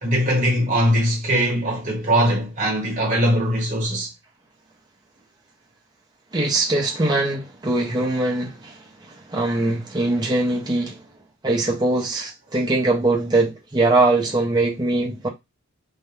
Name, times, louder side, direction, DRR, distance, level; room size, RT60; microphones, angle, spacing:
voice 1, 0.0-4.1, equal, 35° right, 1.0 m, -21 dB
voice 2, 6.3-11.0 11.4-15.3, right 2 dB, 20° right, 0.5 m, -22 dB
2.2 x 2.0 x 3.0 m
head